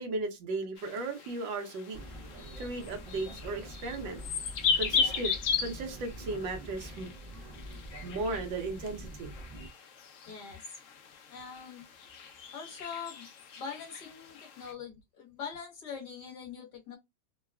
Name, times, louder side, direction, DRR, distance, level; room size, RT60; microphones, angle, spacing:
voice 1, 0.0-2.0 2.6-4.2 4.7-7.1 8.0-9.3, right 3 dB, 75° right, 1.5 m, -36 dB
sound 1, 0.8-14.7, left 6 dB, 80° left, 0.7 m, -37 dB
sound 2, 1.9-9.7, right 1 dB, 45° right, 0.6 m, -45 dB
voice 2, 10.3-10.6 11.3-11.9 12.5-13.3 13.6-17.0, left 6 dB, 60° left, 1.6 m, -43 dB
3.9 x 2.2 x 2.3 m
omnidirectional pair, 2.1 m